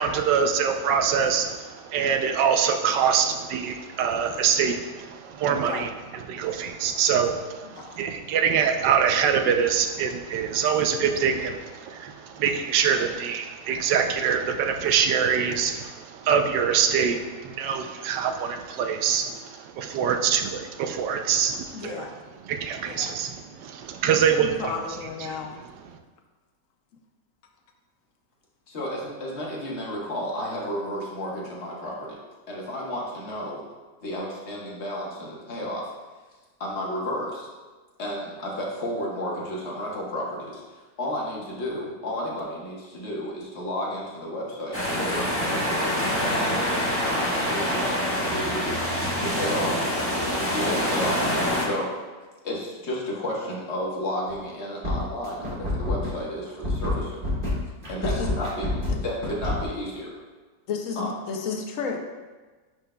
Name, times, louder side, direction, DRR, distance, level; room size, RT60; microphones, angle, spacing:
voice 1, 0.0-22.1 22.4-24.7 25.2-25.4, right 7 dB, 80° right, 5 dB, 1.2 m, -24 dB
voice 2, 21.7-22.2 22.8-23.2 24.1-25.5 58.0-58.3 58.9-59.0 60.7-62.0, left 5 dB, 65° left, 3 dB, 0.8 m, -33 dB
voice 3, 28.7-32.2 32.5-33.6 34.0-35.9 36.6-37.5 38.0-40.6 41.0-45.6 46.1-46.8 47.0-48.0 48.2-48.8 49.2-49.9 50.5-51.9 52.4-57.2 57.9-58.7 59.0-60.1 61.0-61.1, left 1 dB, 40° left, -4 dB, 1.4 m, -32 dB
sound 1, 44.7-51.7, equal, 15° left, 0.6 m, -25 dB
sound 2, 54.3-54.5 54.8-59.6, left 1 dB, 30° right, 1.7 m, -27 dB
10.0 x 4.6 x 2.2 m, 1.3 s
omnidirectional pair, 1.9 m